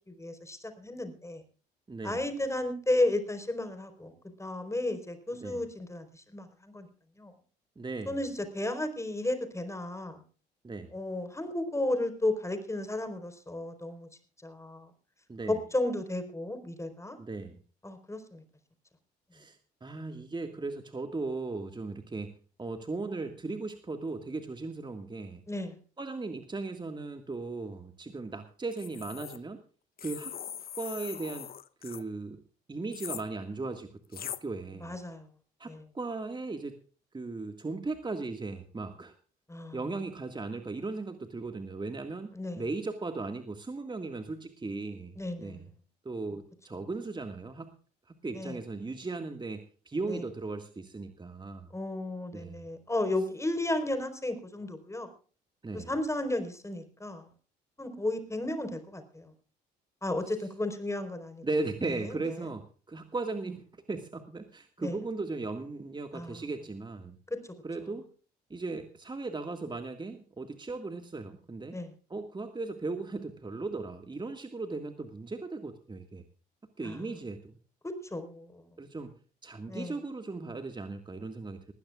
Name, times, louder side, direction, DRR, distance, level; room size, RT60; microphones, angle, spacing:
voice 1, 0.1-1.4 2.0-4.1 4.4-6.9 7.2-7.3 8.1-10.2 10.9-14.1 14.4-14.9 15.5-17.2 17.8-18.4 25.5-25.8 34.8-35.3 35.7-35.8 39.5-39.8 42.3-42.6 45.2-45.6 48.3-48.6 50.1-50.2 51.7-55.1 55.7-57.3 57.8-59.3 60.0-61.4 62.0-62.5 64.8-65.0 66.1-66.4 67.3-67.4 71.7-71.9 76.8-77.0 77.8-78.6 79.7-79.9, left 1 dB, 15° left, 8 dB, 4.5 m, -33 dB
voice 2, 1.9-2.2 5.3-5.6 7.8-8.2 10.6-10.9 15.3-15.6 17.2-17.6 19.3-22.3 22.6-25.4 26.0-29.6 30.0-30.3 30.8-31.5 31.8-32.4 32.7-35.0 35.6-36.8 37.1-39.1 39.7-42.3 42.6-45.7 46.1-47.8 48.1-51.7 52.3-52.6 55.6-55.9 61.4-67.2 67.6-68.1 68.5-71.8 72.1-76.2 76.8-77.5 78.8-79.1 79.4-81.7, right 3 dB, 20° right, 7 dB, 1.9 m, -37 dB
sound 1, 28.7-29.4 30.0-32.0 32.9-33.2 34.1-34.4, left 9 dB, 45° left, 1.0 m, -41 dB
20.5 x 16.0 x 2.4 m, 0.39 s
hypercardioid pair, 55°, 21 cm